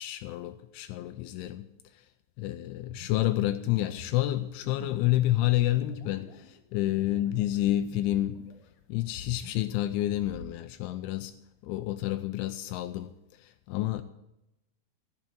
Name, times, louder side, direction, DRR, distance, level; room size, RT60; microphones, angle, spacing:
voice 1, 0.0-1.7 1.9-2.0 2.4-8.5 8.9-11.3 11.6-14.0, left 14 dB, 85° left, 3.0 m, -29 dB
sound 1, 2.9-8.6 8.9-10.5, left 4 dB, 50° left, 3.1 m, -46 dB
14.5 x 7.3 x 8.8 m
omnidirectional pair, 5.5 m